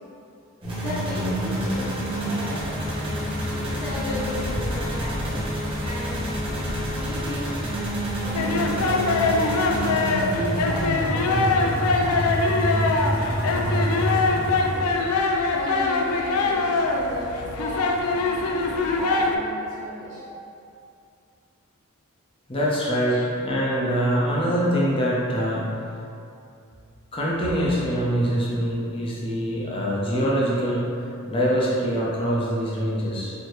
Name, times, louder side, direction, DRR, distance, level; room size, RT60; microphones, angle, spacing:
sound 1, 0.6-15.1, equal, 25° right, 1.0 m, -27 dB
voice 1, 0.7-2.7 3.6-5.4 5.8-6.3 6.9-7.5 8.1-9.6 10.3-14.9 15.5-18.7 19.0-20.3 22.9-23.2, equal, 65° left, -11 dB, 1.2 m, -35 dB
sound 2, 8.3-19.4, left 3 dB, 80° left, 0.4 m, -23 dB
voice 2, 22.5-25.6 27.1-30.9 31.3-33.3, equal, 25° left, -6 dB, 0.6 m, -24 dB
4.5 x 2.7 x 3.1 m, 2.5 s
head